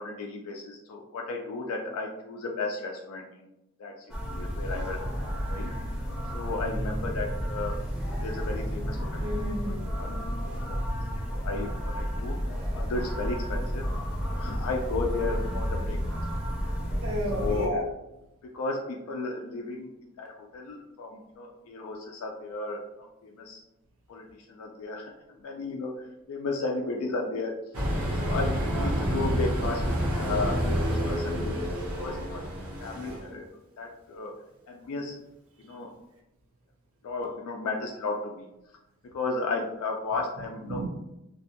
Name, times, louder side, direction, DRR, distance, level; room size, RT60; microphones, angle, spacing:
voice 1, 0.0-3.5 3.8-5.7 6.3-7.8 8.1-9.3 9.9-10.3 10.5-10.8 11.1-12.4 12.7-13.8 14.3-16.2 16.5-16.7 17.3-17.7 18.4-19.9 20.2-23.6 24.1-25.1 25.4-27.5 28.2-32.5 32.8-33.5 33.8-34.3 34.7-35.2 35.6-35.9 37.0-38.5 39.1-40.8, left 3 dB, 80° left, 0 dB, 0.3 m, -34 dB
sound 1, 4.1-17.7, equal, 5° right, 0.5 m, -31 dB
voice 2, 9.2-9.8 17.0-17.8 40.7-40.9, equal, 60° right, 0 dB, 0.5 m, -31 dB
sound 2, 27.7-33.3, equal, 85° right, 0.8 m, -28 dB
2.5 x 2.1 x 2.7 m, 0.91 s
head